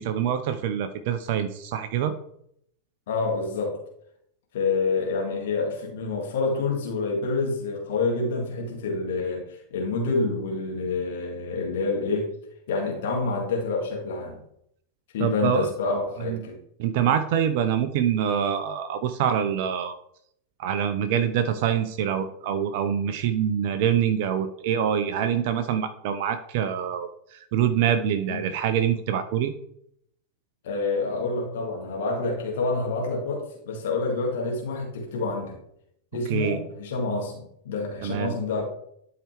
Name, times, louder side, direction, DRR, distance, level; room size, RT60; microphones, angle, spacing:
voice 1, 0.0-2.1 15.2-15.7 16.3-16.4 16.8-20.0 20.6-29.5 36.3-36.6 38.0-38.3, right 9 dB, 50° right, 9 dB, 0.6 m, -25 dB
voice 2, 3.1-3.8 4.5-12.3 12.7-14.4 15.1-16.6 28.3-28.4 30.6-35.6 36.1-38.6, left 3 dB, 55° left, 0 dB, 2.0 m, -27 dB
11.5 x 4.9 x 3.3 m, 0.71 s
figure-of-eight pair, 90°, 0 cm